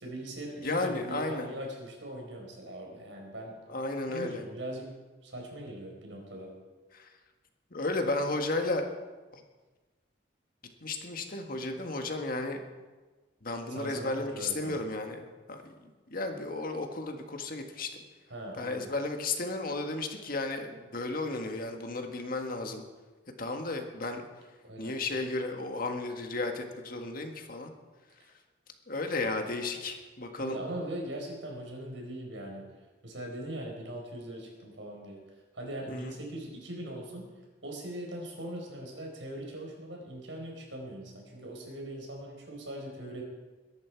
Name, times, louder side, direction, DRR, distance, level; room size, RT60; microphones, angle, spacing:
voice 1, 0.0-3.6 4.1-4.9 5.2-6.5 13.7-14.8 18.3-18.9 24.6-25.0 30.4-32.7 33.0-35.2 35.5-37.2 37.6-43.2, right 1 dB, 90° right, 1 dB, 4.7 m, -40 dB
voice 2, 0.6-1.5 3.7-4.4 6.9-7.1 7.7-8.9 9.3-9.4 10.8-12.6 13.4-18.0 18.6-22.8 23.4-24.2 24.8-27.7 28.9-30.6 35.9-36.1, left 2 dB, 50° left, 4 dB, 1.7 m, -34 dB
22.0 x 11.0 x 4.7 m, 1.3 s
head